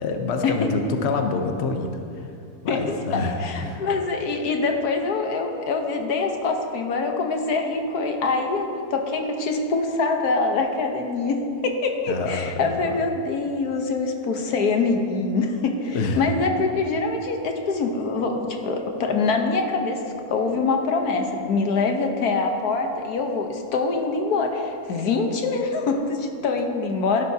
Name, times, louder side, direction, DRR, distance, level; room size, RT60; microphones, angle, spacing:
voice 1, 0.0-2.3 2.6-3.8 12.1-13.0 15.9-16.2, left 3 dB, 50° left, 5 dB, 1.0 m, -27 dB
voice 2, 2.7-20.0 20.3-27.2, left 3 dB, 90° left, 3 dB, 1.5 m, -24 dB
16.0 x 11.0 x 2.8 m, 2.6 s
omnidirectional pair, 1.6 m